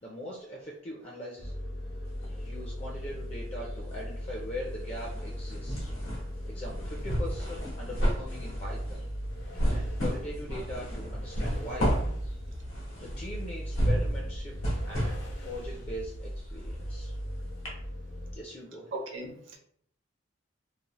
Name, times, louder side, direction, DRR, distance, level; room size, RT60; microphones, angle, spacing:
voice 1, 0.0-1.5 2.3-5.9 6.5-9.0 9.7-11.9 13.0-14.6 14.8-17.2 18.3-19.0, equal, 30° left, -3 dB, 0.4 m, -41 dB
sound 1, 1.4-18.3, equal, 55° left, 0.7 m, -39 dB
sound 2, 2.1-3.2 3.5-17.3 17.7-17.8, equal, 85° left, 1.1 m, -32 dB
voice 2, 18.9-19.6, right 2 dB, 65° right, 1 dB, 0.6 m, -37 dB
2.7 x 2.0 x 2.9 m, 0.64 s
head